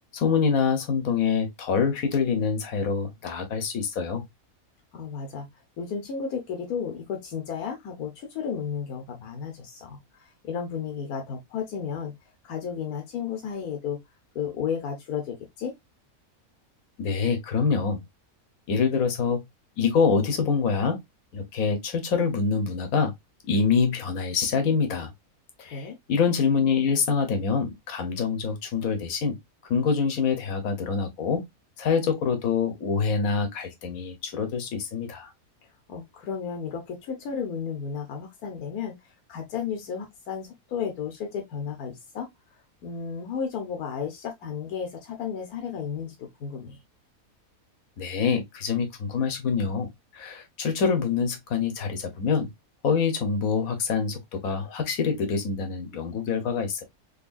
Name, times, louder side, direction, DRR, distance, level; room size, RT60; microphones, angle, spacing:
voice 1, 0.1-4.2 17.0-18.0 18.7-19.4 19.8-21.0 21.3-23.1 23.5-25.1 25.6-29.4 29.7-31.4 31.8-35.3 48.0-49.9 50.1-52.5 52.8-56.8, left 5 dB, 70° left, 1.3 m, -25 dB
voice 2, 4.9-5.5 5.8-14.0 14.3-15.7 25.7-26.0 35.6-46.8, left 7 dB, 85° left, 1.4 m, -33 dB
3.9 x 3.2 x 2.4 m
omnidirectional pair, 1.5 m